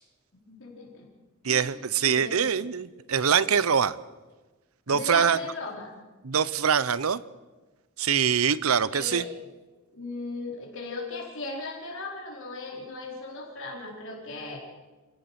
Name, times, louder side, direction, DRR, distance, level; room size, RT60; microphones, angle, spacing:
voice 1, 0.3-1.1 1.4-1.7 2.0-2.5 4.9-5.9 8.9-9.5 9.9-14.6, left 3 dB, 60° left, 0 dB, 4.6 m, -37 dB
voice 2, 1.4-4.0 4.9-5.4 6.2-7.2 8.0-9.2, right 7 dB, 85° right, 18 dB, 0.7 m, -24 dB
27.5 x 16.0 x 6.0 m, 1.2 s
head